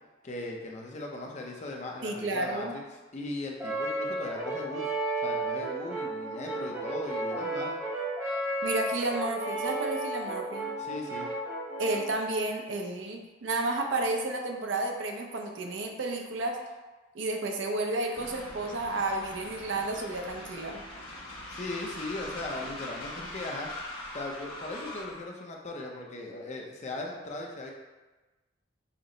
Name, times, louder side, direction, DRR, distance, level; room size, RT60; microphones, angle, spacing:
voice 1, 0.2-2.8 3.1-4.9 5.2-7.8 10.8-11.3 21.5-23.7 24.1-27.7, left 2 dB, 35° left, 0 dB, 0.5 m, -38 dB
voice 2, 2.0-2.7 8.6-10.7 11.8-16.6 17.1-20.8, right 2 dB, 65° right, 2 dB, 0.5 m, -31 dB
Brass instrument, 3.6-12.2, right 2 dB, 15° right, 0.6 m, -33 dB
Train, 18.2-25.2, left 1 dB, 85° left, 1.1 m, -42 dB
5.7 x 2.0 x 3.8 m, 1.2 s
head